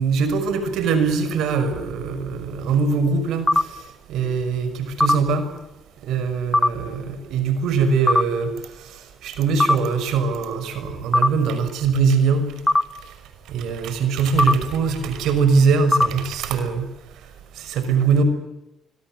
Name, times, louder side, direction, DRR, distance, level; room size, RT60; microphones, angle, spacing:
voice 1, 0.0-3.5 4.1-4.7 5.0-5.4 6.1-8.5 9.2-12.5 13.5-16.8 17.7-18.2, right 5 dB, 85° right, 11 dB, 5.8 m, -21 dB
sound 1, 3.5-3.6 5.0-5.1 6.5-6.7 8.1-8.2 9.6-9.7 11.1-11.3 12.7-12.8 14.4-14.5 15.9-16.1, left 2 dB, 10° left, 1.3 m, -16 dB
25.5 x 23.5 x 7.6 m, 0.92 s
cardioid pair, 90°, 0 cm